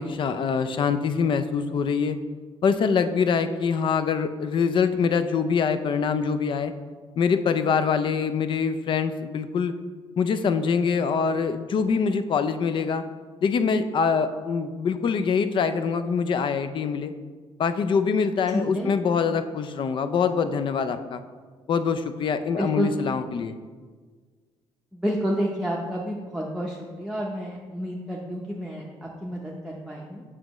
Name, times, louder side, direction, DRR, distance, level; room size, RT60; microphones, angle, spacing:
voice 1, 0.0-2.2 2.6-6.7 7.2-9.7 10.2-13.0 13.4-17.1 17.6-21.2 21.7-23.6, left 6 dB, 50° left, 10 dB, 0.5 m, -24 dB
voice 2, 18.5-18.9 22.6-22.9 24.9-30.2, equal, 5° right, -3 dB, 0.7 m, -30 dB
7.5 x 6.1 x 3.0 m, 1.5 s
cardioid pair, 105°, 10 cm